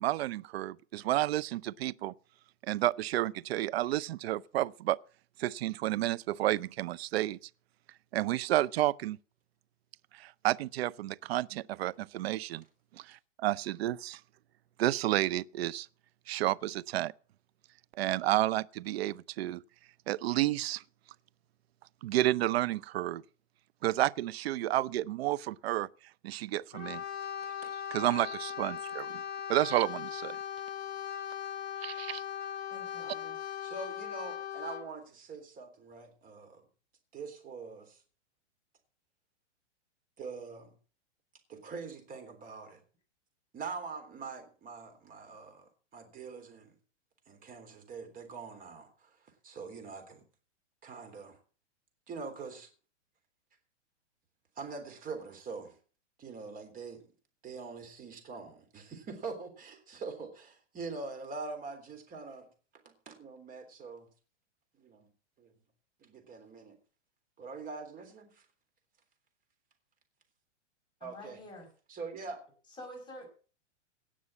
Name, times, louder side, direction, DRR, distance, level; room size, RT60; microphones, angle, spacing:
voice 1, 0.0-2.1 2.7-5.0 5.4-7.4 8.1-9.2 10.2-12.6 13.1-14.2 14.8-15.9 16.3-17.1 18.0-19.6 20.1-20.8 22.0-23.2 23.8-25.9 26.2-27.0 27.9-29.2 29.5-30.4 31.8-32.2, right 15 dB, 55° right, 0.6 m, -31 dB
Brass instrument, 26.7-34.9, left 9 dB, 30° left, 2.0 m, -39 dB
voice 2, 27.4-27.8 33.6-36.7 37.1-38.0 40.2-40.7 41.5-42.8 43.5-46.8 47.3-50.2 50.8-51.4 52.1-52.7 54.6-55.8 56.2-57.1 57.4-64.1 64.7-65.1 65.4-65.5 66.0-66.8 67.4-68.5 71.0-71.4 71.9-72.4, right 4 dB, 25° right, 3.5 m, -44 dB
voice 3, 32.7-33.6 71.0-71.7 72.8-73.3, left 1 dB, 10° left, 5.3 m, -48 dB
17.5 x 6.3 x 7.1 m
hypercardioid pair, 125°, 36 cm